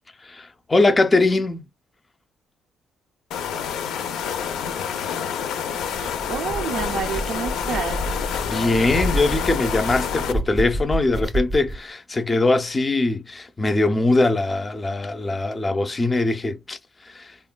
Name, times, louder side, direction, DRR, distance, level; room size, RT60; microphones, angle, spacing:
voice 1, 0.2-1.7 8.4-17.4, left 2 dB, 25° left, 0.4 m, -22 dB
sound 1, 3.3-10.3, left 7 dB, 85° left, 0.4 m, -28 dB
sound 2, 5.7-11.8, right 1 dB, 30° right, 0.5 m, -30 dB
voice 2, 5.9-8.1, right 6 dB, 90° right, 0.5 m, -29 dB
3.4 x 2.1 x 2.2 m
cardioid pair, 90°, 0 cm